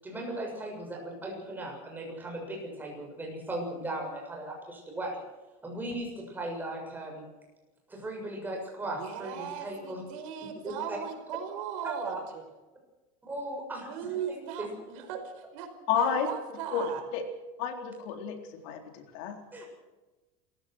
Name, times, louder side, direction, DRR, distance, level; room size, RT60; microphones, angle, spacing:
voice 1, 0.0-5.2 5.6-7.3 7.9-10.0 10.6-11.0 11.8-12.2 13.2-13.9 14.2-14.7 19.5-19.7, right 1 dB, 10° right, 0 dB, 7.3 m, -37 dB
voice 2, 8.8-12.4 13.9-15.7 15.9-17.0, right 9 dB, 80° right, 6 dB, 4.9 m, -38 dB
voice 3, 15.9-16.3 16.7-17.2 17.6-18.4 18.6-19.4, left 7 dB, 65° left, 5 dB, 3.9 m, -30 dB
27.5 x 16.0 x 6.3 m, 1.1 s
cardioid pair, 160°, 17 cm